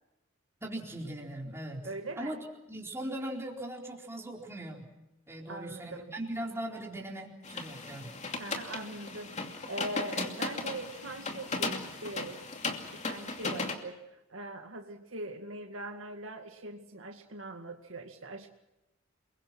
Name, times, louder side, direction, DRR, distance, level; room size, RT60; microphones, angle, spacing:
voice 1, 0.6-1.9 2.2-2.4 2.7-4.9 5.3-8.1, right 1 dB, 15° right, -1 dB, 4.3 m, -39 dB
voice 2, 1.8-2.3 5.5-6.1 8.4-12.4 12.9-14.0 14.3-18.5, right 2 dB, 70° right, 4 dB, 2.1 m, -41 dB
sound 1, 7.4-13.7, left 3 dB, 35° left, 2.6 m, -36 dB
29.0 x 22.5 x 6.1 m, 0.93 s
head